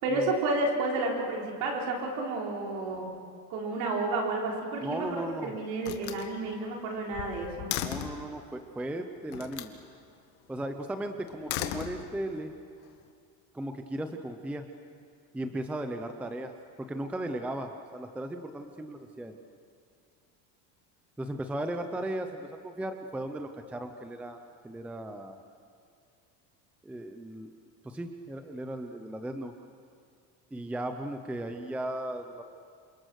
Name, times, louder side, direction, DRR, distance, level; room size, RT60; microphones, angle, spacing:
voice 1, 0.0-3.1 3.5-7.8, right 2 dB, 60° right, -1 dB, 5.0 m, -31 dB
Slam, 4.7-5.3 5.8-8.3 9.3-9.8 11.3-12.4, left 12 dB, 75° left, 1.9 m, -37 dB
voice 2, 4.8-5.5 7.6-9.7 10.5-12.5 13.5-14.7 15.3-16.5 16.8-19.4 21.2-24.4 24.6-25.4 26.8-27.5 27.8-29.5 30.5-32.4, right 1 dB, 5° right, 6 dB, 0.6 m, -36 dB
28.5 x 27.0 x 6.4 m, 2.3 s
cardioid pair, 175°, 38 cm